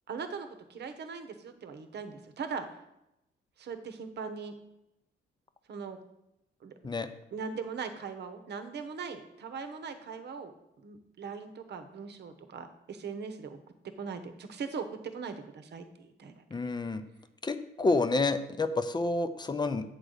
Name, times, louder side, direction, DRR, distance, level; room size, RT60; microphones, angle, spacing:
voice 1, 0.1-2.8 3.6-4.5 5.7-6.0 6.6-6.7 7.3-13.6 14.0-16.4, right 5 dB, 60° right, 9 dB, 1.0 m, -40 dB
voice 2, 16.5-17.0 17.4-19.8, left 3 dB, 20° left, 10 dB, 0.6 m, -29 dB
7.9 x 3.9 x 6.5 m, 0.86 s
cardioid pair, 90°, 20 cm